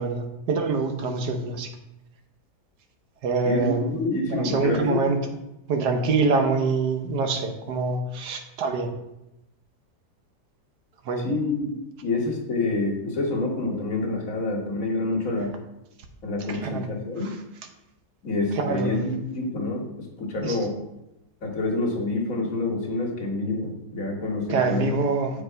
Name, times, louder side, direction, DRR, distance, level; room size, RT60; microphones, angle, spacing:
voice 1, 0.0-1.7 3.2-3.9 4.3-5.2 5.7-8.9 11.1-11.2 16.5-16.8 18.6-19.1 20.4-20.6 24.5-25.3, right 4 dB, 75° right, 5 dB, 1.5 m, -25 dB
voice 2, 3.4-5.0 11.2-11.7 12.0-15.5 16.2-17.3 18.2-20.8 21.4-25.0 25.3-25.4, left 2 dB, 55° left, 0 dB, 1.9 m, -27 dB
7.2 x 5.0 x 4.6 m, 0.89 s
omnidirectional pair, 1.8 m